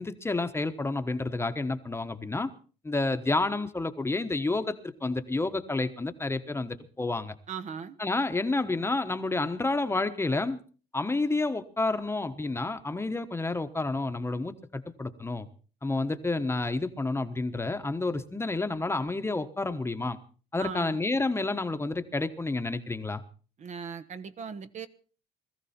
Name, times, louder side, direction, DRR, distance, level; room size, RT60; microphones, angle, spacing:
voice 1, 0.0-2.5 2.8-7.3 8.0-10.6 10.9-15.5 15.8-20.2 20.5-23.2, left 2 dB, 15° left, 1.2 m, -30 dB
voice 2, 7.5-8.0 20.6-21.0 23.6-24.9, right 6 dB, 45° right, 1.1 m, -38 dB
20.5 x 14.0 x 4.4 m
cardioid pair, 110°, 17 cm